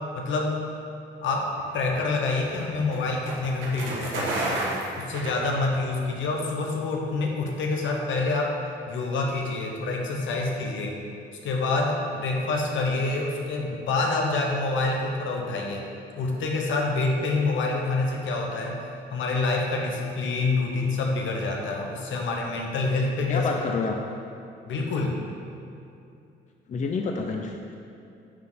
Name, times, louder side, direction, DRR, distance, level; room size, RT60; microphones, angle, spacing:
voice 1, 0.1-0.6 1.2-4.6 5.0-8.6 8.9-11.0 11.4-15.9 16.2-18.8 19.1-23.6 24.7-25.2, left 3 dB, 75° left, 0 dB, 1.1 m, -27 dB
sound 1, 1.5-6.0, right 2 dB, 80° right, 1.5 m, -32 dB
voice 2, 23.3-24.0 26.7-27.7, left 4 dB, 40° left, 2 dB, 0.6 m, -28 dB
9.7 x 3.8 x 4.1 m, 2.6 s
cardioid pair, 90°, 20 cm